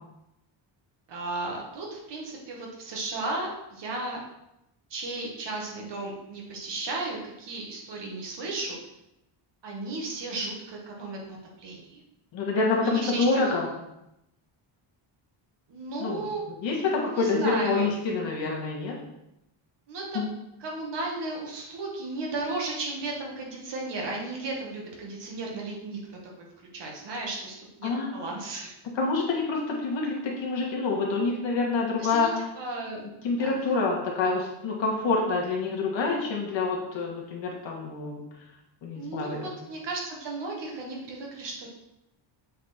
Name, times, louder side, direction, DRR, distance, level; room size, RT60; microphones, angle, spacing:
voice 1, 1.1-4.2 4.9-8.8 9.6-12.0 12.8-13.6 15.7-16.4 17.0-17.9 19.9-20.2 20.6-26.0 26.7-28.7 32.0-32.3 32.6-33.0 33.4-33.5 38.9-41.7, right 2 dB, 60° right, -1 dB, 1.9 m, -34 dB
voice 2, 12.3-13.7 16.0-16.3 16.6-19.0 20.1-20.3 27.8-28.2 29.0-32.5 33.2-38.2 38.8-39.5, left 3 dB, 65° left, -1 dB, 1.9 m, -27 dB
7.7 x 4.2 x 4.3 m, 0.87 s
cardioid pair, 160°, 48 cm